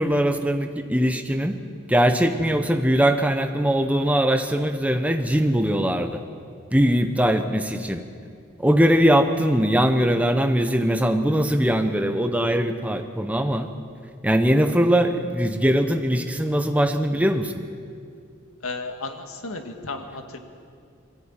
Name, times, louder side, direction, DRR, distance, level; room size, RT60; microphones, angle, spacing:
voice 1, 0.0-1.6 1.9-6.2 6.7-8.0 8.6-13.7 14.2-17.5, equal, 5° right, 7 dB, 0.9 m, -21 dB
voice 2, 18.6-20.4, left 3 dB, 90° left, 4 dB, 1.9 m, -33 dB
22.0 x 14.5 x 9.0 m, 2.3 s
head